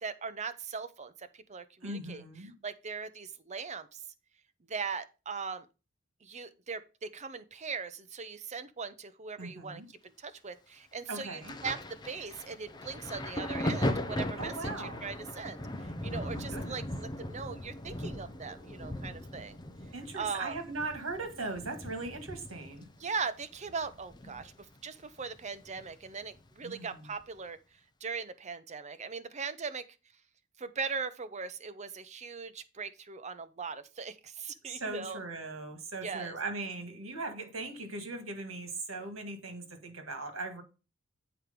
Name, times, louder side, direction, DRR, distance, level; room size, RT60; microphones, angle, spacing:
voice 1, 0.0-2.2 2.6-4.0 4.7-5.7 6.2-15.6 16.0-19.6 20.1-20.6 23.0-24.5 24.8-27.6 28.0-29.9 30.6-35.2 36.0-36.3, right 5 dB, 35° right, 0.7 m, -39 dB
voice 2, 1.8-2.5 9.4-9.9 11.1-11.6 14.4-15.1 16.3-16.9 19.9-22.9 26.6-27.1 34.7-40.6, right 3 dB, 85° right, 1.8 m, -39 dB
Thunder, 11.4-24.8 25.0-26.4 27.2-27.4, left 1 dB, 20° left, 0.7 m, -38 dB
7.9 x 4.6 x 5.1 m
head